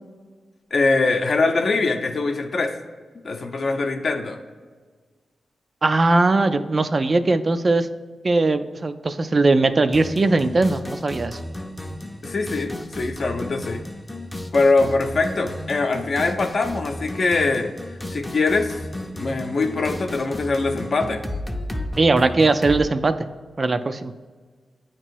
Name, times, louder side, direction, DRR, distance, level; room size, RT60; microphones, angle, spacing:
voice 1, 0.7-2.7 3.2-4.4 12.2-13.8 14.5-17.7 18.1-18.8 19.1-21.2, left 3 dB, 55° left, 5 dB, 0.6 m, -22 dB
voice 2, 5.8-7.9 8.2-11.4 22.0-23.2 23.6-24.1, right 3 dB, 35° right, 10 dB, 0.3 m, -19 dB
sound 1, 9.9-22.9, left 1 dB, 10° left, 0.5 m, -33 dB
8.8 x 3.0 x 4.5 m, 1.4 s
wide cardioid pair, 110°, 0 cm